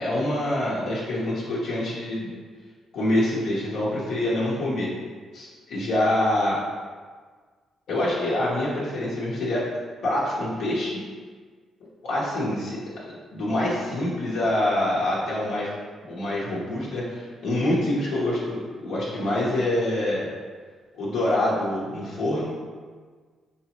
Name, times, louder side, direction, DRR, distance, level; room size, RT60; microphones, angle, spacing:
voice 1, 0.0-2.3 2.9-4.9 5.3-6.6 7.9-9.6 10.0-11.0 12.0-15.7 16.1-20.3 20.9-22.5, left 1 dB, 75° left, -7 dB, 0.9 m, -26 dB
4.1 x 3.3 x 2.9 m, 1.5 s
cardioid pair, 110°, 0 cm